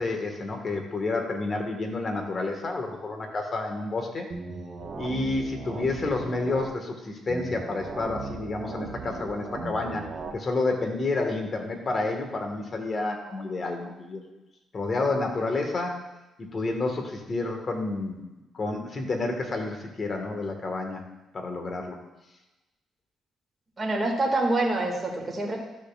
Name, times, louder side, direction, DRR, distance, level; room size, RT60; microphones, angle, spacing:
voice 1, 0.0-4.3 5.0-10.0 10.3-14.2 14.7-16.0 16.4-18.2 18.5-21.0 21.3-22.0, left 3 dB, 40° left, 3 dB, 1.6 m, -29 dB
sound 1, 4.3-6.7 7.3-10.3, right 4 dB, 55° right, 1.3 m, -37 dB
voice 2, 23.8-25.6, right 2 dB, 25° right, -1 dB, 2.1 m, -26 dB
12.5 x 7.0 x 2.4 m, 1.0 s
cardioid pair, 90°, 0 cm